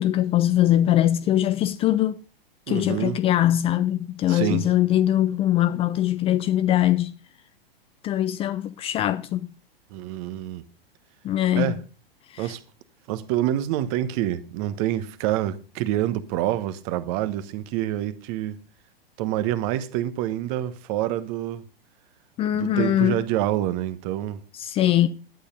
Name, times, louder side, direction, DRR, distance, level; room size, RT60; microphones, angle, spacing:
voice 1, 0.0-2.2 2.7-7.2 8.0-9.5 11.2-11.8 12.3-12.5 22.4-23.2 24.5-25.1, left 12 dB, 20° left, 0.5 m, -22 dB
voice 2, 2.7-3.2 4.3-4.6 9.9-10.7 11.5-11.8 12.4-12.6 13.1-18.6 19.2-21.6 22.5-24.4, right 13 dB, 35° right, 1.1 m, -27 dB
11.5 x 8.4 x 5.4 m
figure-of-eight pair, 100°, 30 cm